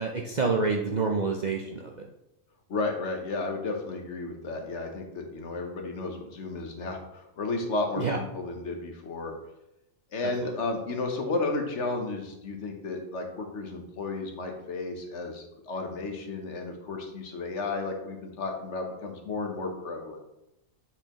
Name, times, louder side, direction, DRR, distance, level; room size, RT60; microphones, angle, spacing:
voice 1, 0.0-2.1 8.0-8.2 10.4-10.5, right 4 dB, 50° right, 1 dB, 0.5 m, -28 dB
voice 2, 2.7-9.3 10.1-20.2, left 3 dB, 65° left, 3 dB, 1.3 m, -33 dB
7.7 x 4.4 x 3.0 m, 0.86 s
omnidirectional pair, 1.3 m